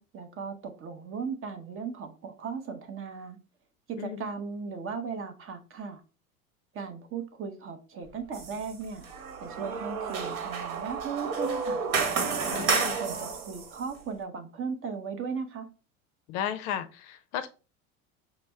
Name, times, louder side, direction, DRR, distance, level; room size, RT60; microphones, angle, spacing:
voice 1, 0.0-3.4 3.9-6.0 6.7-9.0 9.4-11.9 12.5-15.6, right 5 dB, 30° right, 0.7 m, -37 dB
voice 2, 4.0-4.3 12.5-13.0 16.3-17.5, left 9 dB, 50° left, 0.5 m, -34 dB
sound 1, 8.0-14.2, right 7 dB, 80° right, 0.6 m, -39 dB
sound 2, 8.3-8.7 9.0-13.7, right 4 dB, 60° right, 1.1 m, -31 dB
5.0 x 2.0 x 3.3 m
figure-of-eight pair, 75°, 43 cm